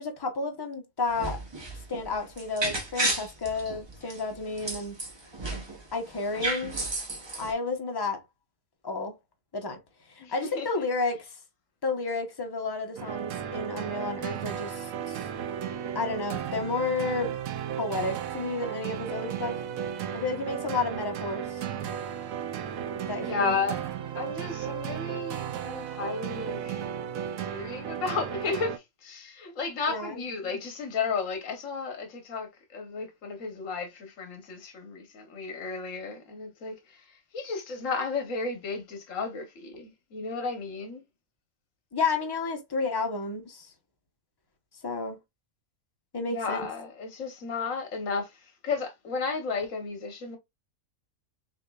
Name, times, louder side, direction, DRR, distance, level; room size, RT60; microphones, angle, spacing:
voice 1, 0.0-1.4 1.9-4.9 5.9-6.7 7.4-8.2 8.8-9.1 9.5-9.8 10.1-11.3 11.8-15.2 15.9-17.4 17.8-19.6 20.1-21.6 22.9-23.6 29.9-30.2 41.9-43.7 44.8-45.2 46.1-46.7, left 3 dB, 20° left, 0.8 m, -31 dB
sound 1, 1.0-5.8 6.1-7.5, right 2 dB, 20° right, 0.9 m, -33 dB
voice 2, 10.2-10.8 23.2-23.8 24.1-26.8 27.5-37.0 37.3-41.0 46.3-48.3 48.6-50.4, left 4 dB, 65° left, 1.4 m, -33 dB
sound 2, 13.0-28.8, right 9 dB, 80° right, 1.0 m, -35 dB
5.9 x 2.8 x 2.3 m
omnidirectional pair, 1.4 m